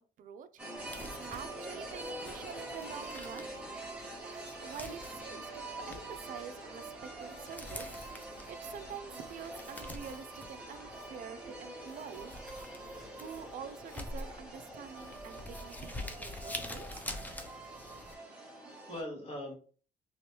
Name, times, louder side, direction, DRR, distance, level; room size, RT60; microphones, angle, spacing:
voice 1, 0.2-3.5 4.0-8.2 8.5-12.3 13.2-17.0, right 8 dB, 50° right, 11 dB, 0.4 m, -47 dB
sound 1, 0.6-19.0, right 1 dB, 5° right, 1.0 m, -45 dB
Crumpling crinkling, 0.8-18.1, left 1 dB, 10° left, 0.5 m, -47 dB
voice 2, 18.1-19.5, left 1 dB, 35° left, 0 dB, 1.5 m, -43 dB
3.1 x 3.0 x 2.9 m, 0.40 s
cardioid pair, 110°, 17 cm